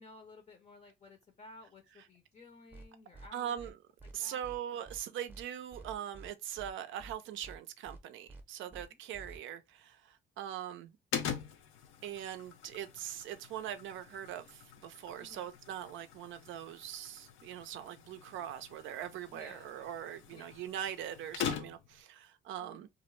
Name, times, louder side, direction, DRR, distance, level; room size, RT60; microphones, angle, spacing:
voice 1, 0.0-3.7 4.0-4.4 8.7-9.0 15.2-15.5 19.3-19.8 20.3-20.7 22.6-22.9, left 2 dB, 35° left, 0.5 m, -55 dB
sound 1, 2.7-2.9 3.1-3.3 3.6-3.7 4.0-4.1 4.4-4.6 4.9-5.0 5.3-5.4 5.7-6.3 6.6-6.7 7.0-7.1 7.4-7.6 7.9-8.0 8.3-8.4 8.7-8.9 9.1-9.4, right 2 dB, 10° right, 0.6 m, -50 dB
voice 2, 3.3-3.7 4.1-11.0 12.0-22.9, right 10 dB, 80° right, 0.4 m, -42 dB
sound 2, 11.1-22.0, left 8 dB, 90° left, 0.5 m, -43 dB
2.4 x 2.0 x 3.0 m
cardioid pair, 90°, 20 cm